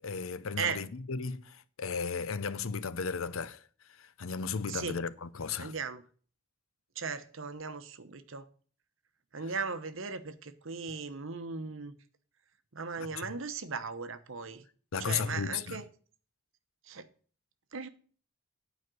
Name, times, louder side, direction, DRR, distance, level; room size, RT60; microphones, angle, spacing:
voice 1, 0.0-5.8 12.9-13.4 14.9-15.8, left 5 dB, 70° left, 0.6 m, -35 dB
voice 2, 5.6-6.0 7.0-8.4 9.3-11.9 12.7-14.6 15.0-15.8 16.9-17.1 17.7-17.9, right 5 dB, 65° right, 0.9 m, -37 dB
9.4 x 5.0 x 7.8 m
head